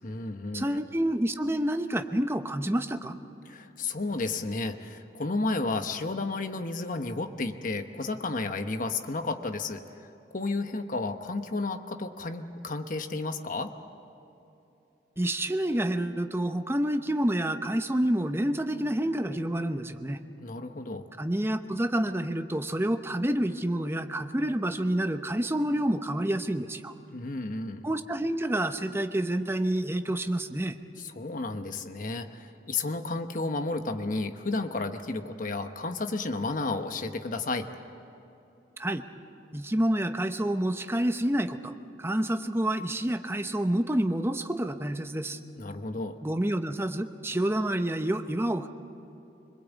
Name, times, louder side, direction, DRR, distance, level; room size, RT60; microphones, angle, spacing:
voice 1, 0.0-0.8 3.5-13.7 20.4-21.1 27.1-27.8 31.0-37.7 45.6-46.2, left 3 dB, 50° left, 7 dB, 1.1 m, -32 dB
voice 2, 0.5-3.2 15.2-20.2 21.2-26.9 27.8-30.8 38.8-39.1 39.5-45.4 46.2-48.7, right 1 dB, 15° right, 8 dB, 0.9 m, -28 dB
25.5 x 21.0 x 8.3 m, 2.9 s
head